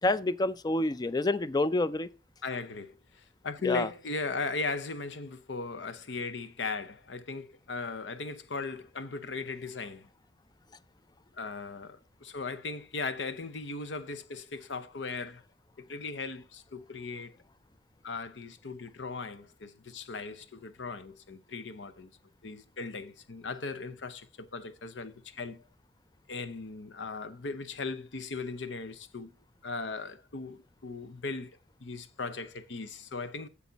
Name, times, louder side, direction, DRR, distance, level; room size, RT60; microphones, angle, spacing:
voice 1, 0.0-2.1 3.6-3.9, left 2 dB, 20° left, 0.4 m, -28 dB
voice 2, 2.4-10.1 11.4-15.4 15.8-17.3 18.0-22.1 22.4-25.6 26.3-29.3 29.6-33.5, left 4 dB, 70° left, 0.7 m, -38 dB
8.4 x 7.2 x 4.0 m
head